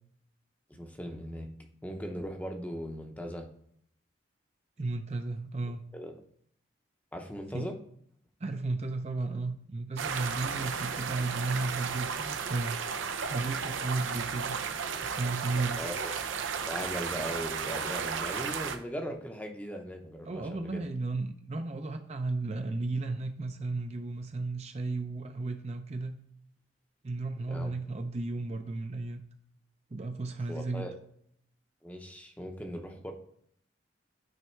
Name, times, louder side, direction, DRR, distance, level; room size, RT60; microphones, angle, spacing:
voice 1, 0.7-1.5 1.8-3.5 5.9-6.1 7.1-7.7 15.8-16.1 16.7-20.8 27.4-27.7 30.5-30.9 31.8-33.1, equal, 10° left, 3 dB, 0.7 m, -39 dB
voice 2, 4.8-5.8 7.5-7.7 8.4-12.8 13.3-14.6 15.0-15.9 20.3-26.2 27.0-29.2 29.9-30.9, right 3 dB, 35° right, 5 dB, 0.5 m, -34 dB
sound 1, 10.0-18.8, right 6 dB, 85° right, 0.7 m, -34 dB
9.2 x 3.4 x 4.5 m, 0.67 s
head